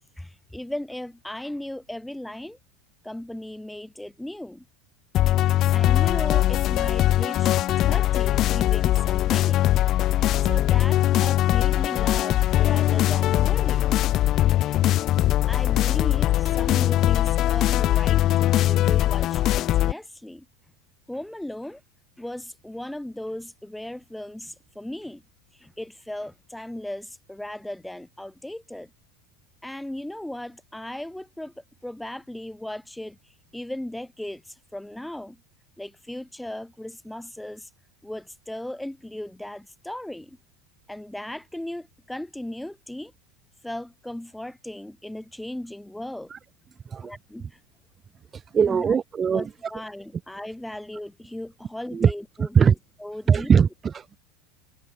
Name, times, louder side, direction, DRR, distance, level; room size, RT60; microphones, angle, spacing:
voice 1, 0.2-2.6 3.0-4.6 5.7-9.7 10.4-14.0 15.5-20.5 21.1-21.8 22.2-25.2 25.5-28.9 29.6-33.2 33.5-35.4 35.8-37.7 38.0-40.4 40.9-43.1 43.6-46.3 47.0-47.6 48.7-48.9 49.3-52.7 53.0-53.5, left 1 dB, 5° left, 1.8 m, -37 dB
sound 1, 5.1-19.9, left 14 dB, 45° left, 0.5 m, -21 dB
voice 2, 48.3-49.5 51.9-52.1 52.4-52.7 53.3-54.2, right 7 dB, 25° right, 1.1 m, -21 dB
supercardioid pair, 120°, 0 cm